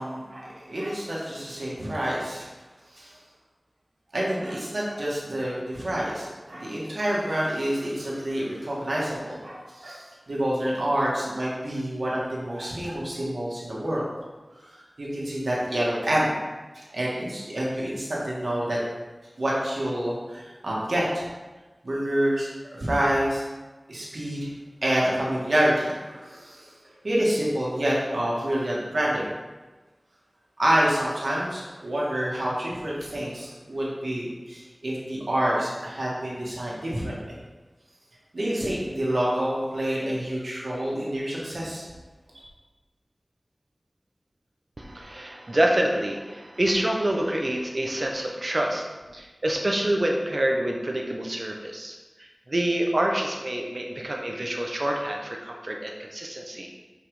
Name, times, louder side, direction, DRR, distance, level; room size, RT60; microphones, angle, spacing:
voice 1, 0.0-2.5 2.9-3.2 4.1-14.1 14.5-14.7 15.0-16.4 16.7-18.8 19.4-21.3 21.8-23.4 23.9-24.5 24.8-26.7 27.0-29.3 30.6-37.4 38.3-41.8 42.3-42.4, right 1 dB, 80° right, -5 dB, 2.1 m, -27 dB
voice 2, 44.8-48.8 49.1-51.9 52.5-56.7, right 1 dB, 50° right, 1 dB, 1.2 m, -27 dB
5.9 x 5.6 x 5.1 m, 1.2 s
wide cardioid pair, 60°, 0 cm